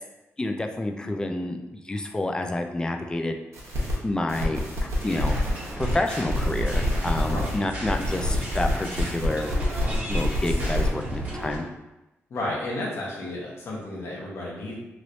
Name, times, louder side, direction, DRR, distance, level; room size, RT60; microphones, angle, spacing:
voice 1, 0.4-3.3 4.0-5.4 5.8-9.5 10.1-11.6, left 2 dB, 15° left, 4 dB, 0.3 m, -29 dB
sound 1, 3.5-4.0 4.3-7.6 7.8-10.9, left 1 dB, 85° right, 0.9 m, -27 dB
sound 2, 4.8-11.5, equal, 60° right, 0.5 m, -40 dB
sound 3, 5.0-11.6, right 1 dB, 35° right, 1.4 m, -36 dB
voice 2, 12.3-14.8, left 1 dB, 65° left, -6 dB, 1.1 m, -32 dB
3.1 x 3.0 x 2.6 m, 0.99 s
cardioid pair, 105°, 5 cm